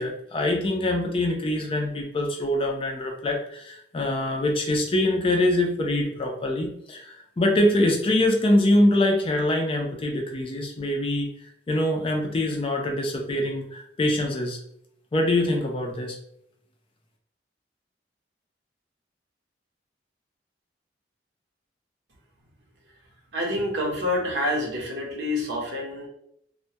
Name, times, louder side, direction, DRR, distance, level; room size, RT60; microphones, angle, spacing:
voice 1, 0.0-11.3 11.7-14.6 15.1-16.2, left 1 dB, 30° left, 2 dB, 0.4 m, -24 dB
voice 2, 23.3-26.1, left 1 dB, 70° right, -2 dB, 0.8 m, -27 dB
2.2 x 2.1 x 2.7 m, 0.72 s
head